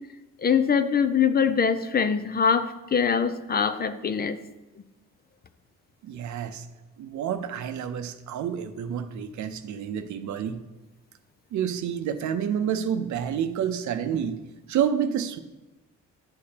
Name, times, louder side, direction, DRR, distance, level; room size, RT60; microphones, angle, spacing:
voice 1, 0.4-4.4, left 6 dB, 30° left, 11 dB, 0.5 m, -23 dB
voice 2, 6.0-6.7 7.0-10.6 11.5-14.4 14.7-15.4, right 8 dB, 70° right, 9 dB, 0.7 m, -29 dB
10.5 x 6.5 x 2.9 m, 1.1 s
cardioid pair, 90°, 30 cm